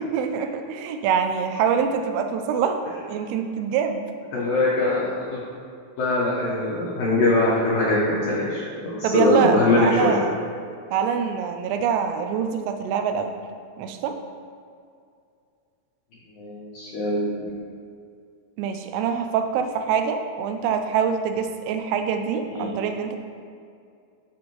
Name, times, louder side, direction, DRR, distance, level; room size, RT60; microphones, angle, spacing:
voice 1, 0.0-2.8 3.1-4.0 9.0-10.4 10.9-13.3 13.8-14.1 18.6-23.2, right 7 dB, 85° right, 6 dB, 3.1 m, -25 dB
voice 2, 4.3-5.4 6.0-10.1 16.4-17.3 22.5-22.7, left 2 dB, 80° left, -8 dB, 2.0 m, -22 dB
13.0 x 4.3 x 3.1 m, 2.4 s
omnidirectional pair, 5.6 m